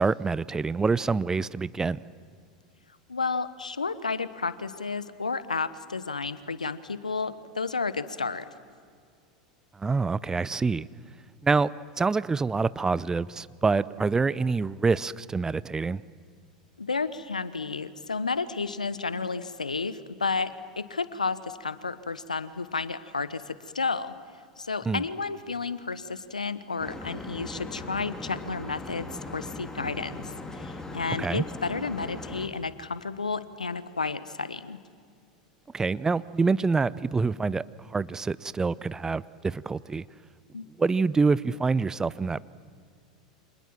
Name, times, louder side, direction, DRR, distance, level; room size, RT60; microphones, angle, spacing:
voice 1, 0.0-2.0 9.7-10.9 11.4-11.7 12.0-16.0 24.9-25.0 31.2-31.4 35.7-40.0 40.8-42.4, right 4 dB, 15° right, 19 dB, 0.6 m, -26 dB
voice 2, 3.1-8.5 16.8-24.1 24.6-34.8 40.5-40.7, left 4 dB, 85° left, 15 dB, 1.1 m, -32 dB
sound 1, 26.8-32.5, left 2 dB, 15° left, 3.2 m, -39 dB
29.0 x 26.5 x 7.5 m, 2.2 s
figure-of-eight pair, 85°, 4 cm